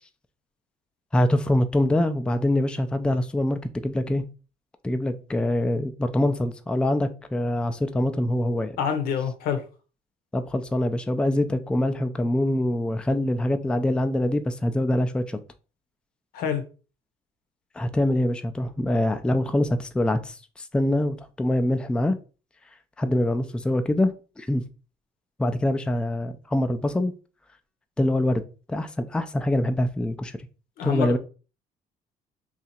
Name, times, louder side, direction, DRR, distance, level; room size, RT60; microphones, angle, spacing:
voice 1, 1.1-4.2 4.8-8.8 10.3-15.4 17.8-22.2 23.0-24.6 25.4-27.1 28.0-28.4 28.7-30.4 30.8-31.2, left 1 dB, 5° left, 0.3 m, -24 dB
voice 2, 8.8-9.6 16.3-16.6 30.8-31.2, left 7 dB, 90° left, 0.8 m, -26 dB
2.8 x 2.4 x 4.1 m
cardioid pair, 110°, 15 cm